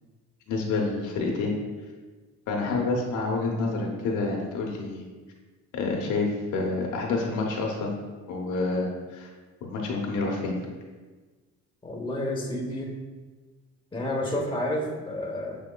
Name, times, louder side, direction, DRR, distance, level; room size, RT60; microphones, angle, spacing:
voice 1, 0.5-1.5 2.5-5.0 5.7-7.9 8.3-9.3 9.6-10.5, left 3 dB, 80° left, -1 dB, 0.8 m, -28 dB
voice 2, 11.8-12.9 13.9-15.6, left 1 dB, 15° left, -2 dB, 0.9 m, -30 dB
6.8 x 2.8 x 2.2 m, 1.3 s
cardioid pair, 90°, 30 cm